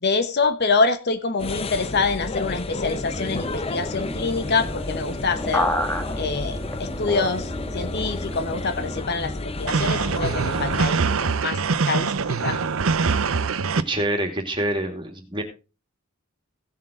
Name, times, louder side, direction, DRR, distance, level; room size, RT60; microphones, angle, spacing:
voice 1, 0.0-5.7 6.2-12.6, left 4 dB, 50° left, 9 dB, 1.1 m, -26 dB
sound 1, 1.4-10.9, left 2 dB, 30° left, 0.7 m, -31 dB
sound 2, 3.3-9.0, left 1 dB, 10° left, 1.3 m, -31 dB
sound 3, 9.7-13.8, right 4 dB, 75° right, 0.7 m, -23 dB
voice 2, 13.9-15.4, right 1 dB, 25° right, 4 dB, 2.5 m, -26 dB
16.5 x 7.6 x 3.8 m, 0.31 s
head